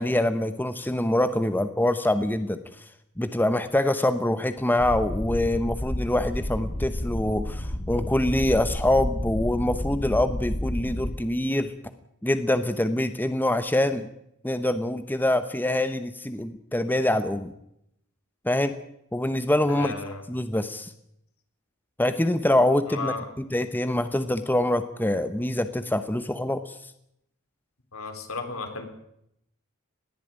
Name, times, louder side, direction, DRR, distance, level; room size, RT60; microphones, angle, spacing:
voice 1, 0.0-2.8 3.2-11.7 12.2-14.1 14.4-17.5 18.4-18.8 19.1-19.9 20.3-20.9 22.0-26.9, left 1 dB, 10° left, 10 dB, 0.9 m, -25 dB
sound 1, 4.8-11.1, left 1 dB, 35° left, 1.4 m, -31 dB
voice 2, 19.7-20.2 22.9-23.3 27.9-28.9, left 3 dB, 70° left, 6 dB, 3.8 m, -34 dB
20.5 x 14.5 x 8.9 m, 0.76 s
head